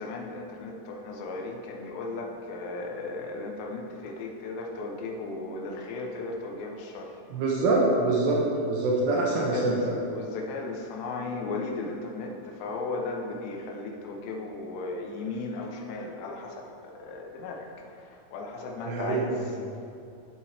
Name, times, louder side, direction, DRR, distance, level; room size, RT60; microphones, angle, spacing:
voice 1, 0.0-7.2 9.0-9.9 10.1-17.7 18.0-19.6, left 3 dB, 80° left, 1 dB, 3.1 m, -36 dB
voice 2, 7.3-8.4 8.6-9.9 18.8-19.3, right 2 dB, 80° right, -3 dB, 3.2 m, -25 dB
11.5 x 7.7 x 3.5 m, 2.6 s
omnidirectional pair, 5.0 m